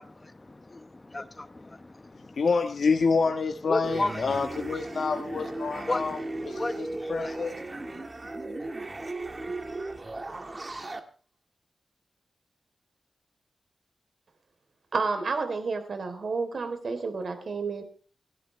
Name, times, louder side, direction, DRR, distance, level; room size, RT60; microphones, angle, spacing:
voice 1, 0.0-2.4 3.7-4.2 5.9-8.0, left 2 dB, 25° left, 1.0 m, -35 dB
voice 2, 2.4-6.2 6.4-7.6, left 4 dB, 70° left, 1.4 m, -27 dB
sound 1, 3.8-11.0, right 2 dB, 30° right, 1.9 m, -36 dB
voice 3, 14.9-17.8, right 4 dB, 65° right, 3.5 m, -30 dB
29.0 x 12.0 x 3.3 m
wide cardioid pair, 110°, 0 cm